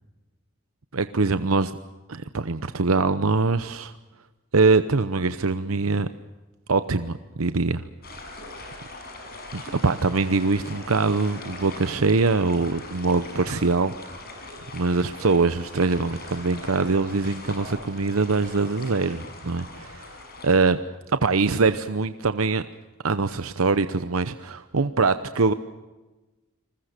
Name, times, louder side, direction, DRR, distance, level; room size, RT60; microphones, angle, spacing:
voice 1, 0.9-1.7 2.1-3.9 4.5-6.1 6.7-7.8 9.5-14.2 14.7-20.1 20.4-20.8 21.2-22.6 23.0-25.5, right 3 dB, 80° right, 11 dB, 0.8 m, -23 dB
sound 1, 8.0-20.6, left 2 dB, 45° left, 6.2 m, -41 dB
28.0 x 21.0 x 6.7 m, 1.1 s
head